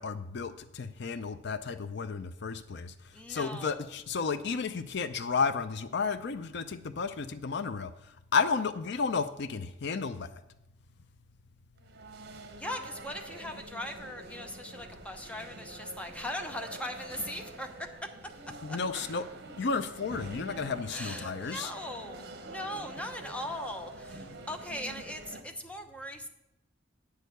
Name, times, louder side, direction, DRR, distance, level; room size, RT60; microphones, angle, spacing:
voice 1, 0.0-2.9 3.3-7.9 8.3-10.3 18.6-19.2 19.6-21.7, left 5 dB, 65° left, 12 dB, 0.5 m, -32 dB
voice 2, 3.1-3.9 12.6-17.9 18.7-18.8 20.9-26.3, left 1 dB, 5° left, 5 dB, 0.9 m, -40 dB
sound 1, 11.8-25.4, right 2 dB, 60° right, 1.1 m, -46 dB
9.3 x 6.5 x 6.7 m, 0.89 s
head